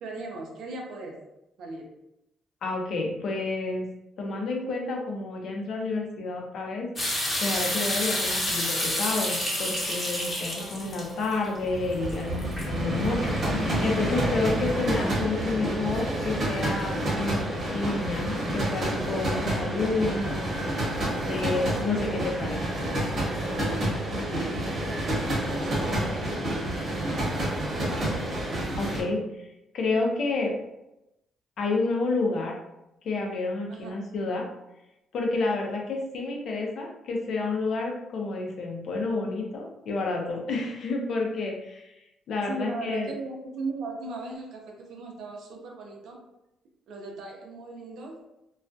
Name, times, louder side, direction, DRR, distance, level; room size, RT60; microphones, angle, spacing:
voice 1, 0.0-1.2 1.6-1.9 10.5-11.0 21.1-21.5 25.6-26.1 33.7-33.9 42.5-46.2 46.9-48.2, right 3 dB, 80° right, 0 dB, 0.6 m, -37 dB
voice 2, 2.6-3.9 4.2-6.9 7.4-20.5 21.3-22.6 28.8-29.5 29.7-30.5 31.6-32.6 33.0-34.5 35.1-43.1, left 3 dB, 65° left, 0 dB, 0.6 m, -30 dB
sound 1, 7.0-13.8, left 1 dB, 30° left, 0.9 m, -30 dB
sound 2, 11.6-29.0, right 1 dB, 45° right, 0.9 m, -29 dB
sound 3, 12.8-19.9, equal, ahead, 0.3 m, -41 dB
2.3 x 2.2 x 2.6 m, 0.89 s
cardioid pair, 90°, 0 cm